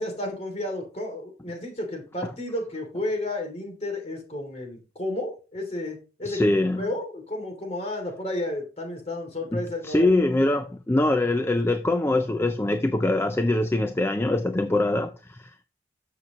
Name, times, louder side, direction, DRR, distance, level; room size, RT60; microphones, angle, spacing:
voice 1, 0.0-10.1, left 1 dB, 35° left, 2.8 m, -32 dB
voice 2, 6.3-6.9 9.5-15.6, left 2 dB, 15° left, 0.4 m, -23 dB
13.0 x 6.7 x 3.1 m
head